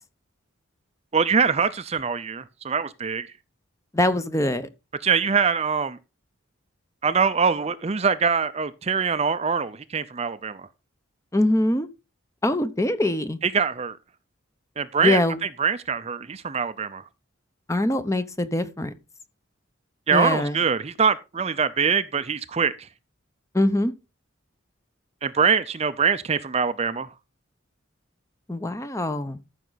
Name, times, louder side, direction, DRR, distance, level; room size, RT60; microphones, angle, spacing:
voice 1, 1.1-3.3 5.0-6.0 7.0-10.7 13.4-14.0 14.8-17.0 20.1-22.9 25.2-27.1, right 6 dB, 30° right, 0.5 m, -23 dB
voice 2, 3.9-4.7 11.3-11.9 12.4-13.4 15.0-15.4 17.7-18.9 20.1-20.6 23.5-23.9 28.5-29.4, left 1 dB, 15° left, 0.8 m, -23 dB
14.0 x 6.4 x 4.0 m
head